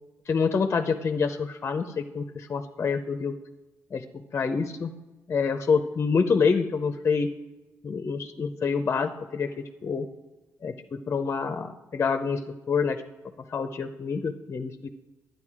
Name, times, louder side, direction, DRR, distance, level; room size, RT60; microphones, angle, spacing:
voice 1, 0.3-3.3 3.9-4.0 4.3-4.9 5.3-7.3 7.8-9.5 9.8-10.1 10.6-12.4 12.7-13.0 13.5-14.9, left 5 dB, 45° left, 7 dB, 0.7 m, -27 dB
11.0 x 9.3 x 4.9 m, 1.1 s
cardioid pair, 75°, 6 cm